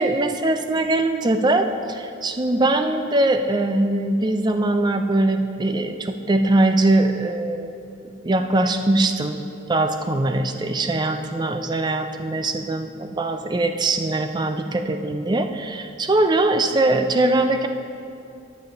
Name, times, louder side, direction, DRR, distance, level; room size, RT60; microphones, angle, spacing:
voice 1, 0.0-7.8 8.2-9.4 9.7-17.7, right 2 dB, 20° right, 7 dB, 0.4 m, -21 dB
11.0 x 7.1 x 3.8 m, 2.6 s
head